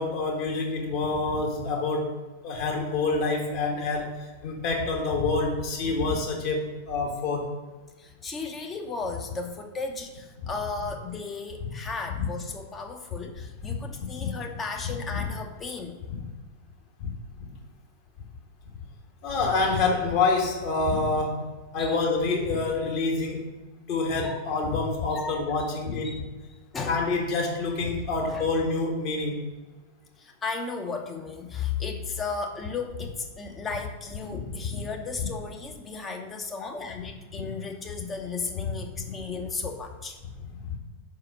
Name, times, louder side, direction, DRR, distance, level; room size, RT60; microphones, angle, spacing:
voice 1, 0.0-7.5 10.4-10.5 11.6-11.7 12.1-12.3 14.2-14.3 15.1-15.2 16.1-16.2 17.0-17.1 17.4-17.5 19.2-21.5 21.7-23.5 23.9-26.2 26.9-29.5 34.3-34.4 40.7-40.8, left 3 dB, 45° left, 0 dB, 1.6 m, -27 dB
voice 2, 8.0-16.0 21.8-22.0 24.2-24.4 25.1-25.7 26.0-26.2 26.7-27.1 28.3-28.5 30.2-40.2, left 4 dB, 20° left, 3 dB, 0.8 m, -35 dB
4.9 x 4.8 x 6.0 m, 1.3 s
figure-of-eight pair, 90°, 0 cm